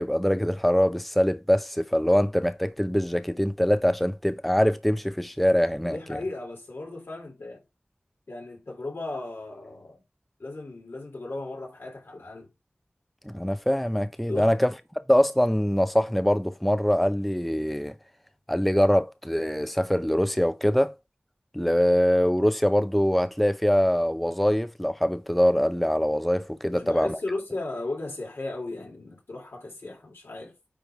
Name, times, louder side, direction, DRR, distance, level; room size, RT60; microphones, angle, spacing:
voice 1, 0.0-6.2 13.3-14.7 15.1-18.0 18.5-20.9 21.5-27.2, equal, ahead, 0.5 m, -23 dB
voice 2, 5.8-7.6 8.3-10.0 10.4-12.5 14.3-14.5 26.7-30.5, left 2 dB, 85° left, 3.0 m, -36 dB
9.3 x 3.3 x 3.5 m
wide cardioid pair, 50°, 4 cm